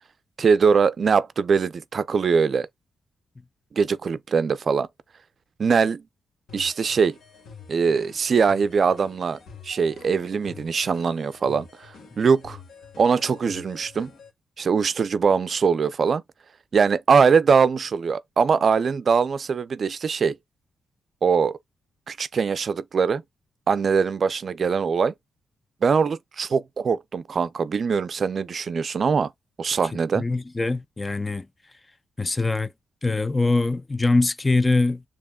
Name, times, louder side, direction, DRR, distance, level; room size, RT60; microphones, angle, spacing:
voice 1, 0.4-2.7 3.7-4.9 5.6-6.0 6.5-7.2 7.7-9.4 9.6-12.6 13.0-14.1 14.6-16.2 16.7-20.4 21.2-21.6 22.1-23.2 23.7-25.1 25.8-29.3 29.6-30.3, right 5 dB, 55° right, 0.3 m, -22 dB
sound 1, 6.5-14.3, left 5 dB, 80° left, 1.5 m, -47 dB
voice 2, 30.1-31.5 32.2-32.7 33.0-35.0, left 3 dB, 25° left, 0.3 m, -23 dB
6.9 x 2.8 x 2.2 m
cardioid pair, 80°, 0 cm